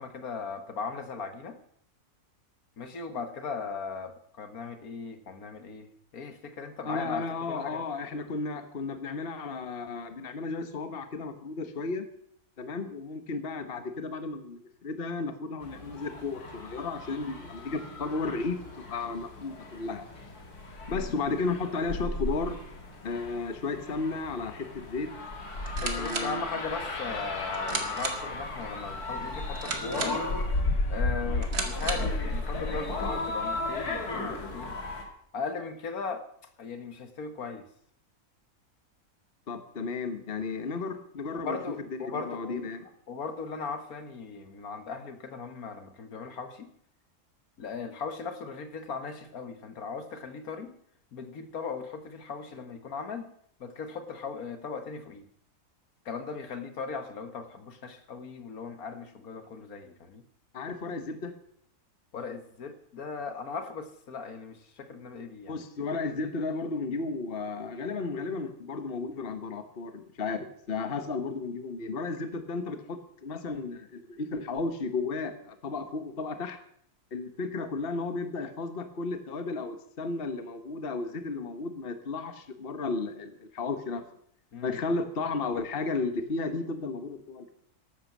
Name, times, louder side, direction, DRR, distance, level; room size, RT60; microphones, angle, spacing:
voice 1, 0.0-1.6 2.8-5.9 6.1-7.8 20.9-21.1 25.8-30.2 30.9-34.8 35.3-36.2 36.6-37.7 41.3-42.6 43.1-46.7 47.6-50.8 51.1-53.3 53.6-55.3 56.1-60.2 62.1-65.6 84.5-84.8, left 5 dB, 70° left, 9 dB, 1.8 m, -38 dB
voice 2, 6.8-12.1 12.6-18.6 18.9-20.0 20.9-22.6 23.0-25.1 25.8-26.6 39.5-42.8 60.5-61.3 65.5-76.6 77.1-84.0 84.6-87.5, left 3 dB, 40° left, 9 dB, 1.4 m, -34 dB
sound 1, 15.6-35.0, left 2 dB, 90° left, 3.1 m, -34 dB
sound 2, 25.5-32.2, right 4 dB, 90° right, 2.5 m, -37 dB
13.5 x 11.5 x 7.3 m, 0.66 s
omnidirectional pair, 1.6 m